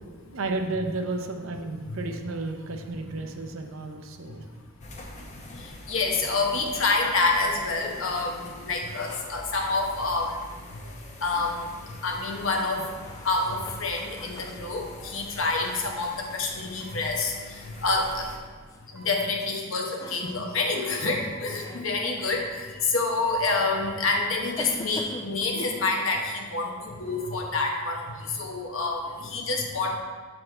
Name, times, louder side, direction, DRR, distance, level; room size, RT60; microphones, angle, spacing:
voice 1, 0.1-4.5 14.4-14.7 20.9-21.0 21.6-21.8, right 2 dB, 65° right, 5 dB, 0.6 m, -33 dB
sound 1, 4.8-18.4, left 1 dB, 35° left, 0.7 m, -45 dB
voice 2, 5.9-10.4 11.2-11.7 12.0-12.8 13.2-17.3 17.8-18.3 18.9-28.0 28.4-30.0, left 3 dB, 65° left, 1 dB, 0.9 m, -27 dB
sound 2, 11.5-11.7 12.5-12.8 13.6-13.9 14.6-14.9 15.7-16.0 16.8-17.0 17.9-18.1 18.9-19.2 20.0-20.3 21.1-21.4 22.2-22.4 23.3-23.5 24.3-24.6 25.4-25.7 26.8-27.3 27.7-27.8, right 3 dB, 5° right, 0.9 m, -49 dB
sound 3, 13.0-16.2 18.7-18.8 19.8-20.3 21.5-21.9 22.8-22.9 24.6-25.8, left 2 dB, 15° left, 0.3 m, -43 dB
6.4 x 4.3 x 4.3 m, 1.5 s
head